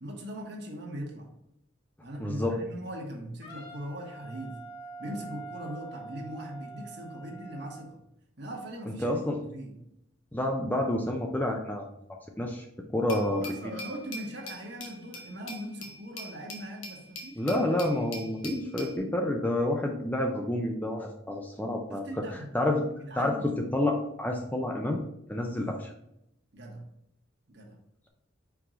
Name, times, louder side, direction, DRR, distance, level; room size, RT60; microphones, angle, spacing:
voice 1, 0.0-1.3 2.0-4.6 5.0-8.0 8.4-9.7 13.4-17.5 21.9-22.6 23.0-23.5 26.5-26.8 27.5-27.8, equal, 55° right, 1 dB, 1.3 m, -40 dB
voice 2, 2.2-2.6 9.0-9.4 10.3-11.9 12.4-12.6 12.9-13.4 17.4-22.2 22.5-22.9 23.2-25.0 25.3-25.9, left 1 dB, 10° left, 1 dB, 0.5 m, -29 dB
Wind instrument woodwind instrument, 3.4-7.9, right 3 dB, 30° left, 1.8 m, -45 dB
Glass, 13.1-19.0, left 1 dB, 75° left, 1.2 m, -43 dB
5.3 x 4.8 x 3.8 m, 0.80 s
head